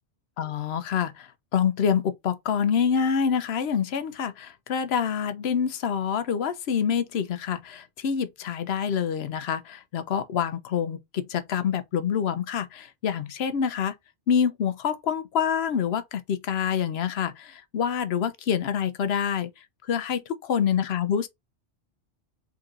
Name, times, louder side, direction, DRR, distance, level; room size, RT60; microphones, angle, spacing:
voice 1, 0.4-13.9 14.3-20.2 20.5-21.3, left 7 dB, 70° left, 0.9 m, -26 dB
3.9 x 3.7 x 2.4 m
omnidirectional pair, 1.1 m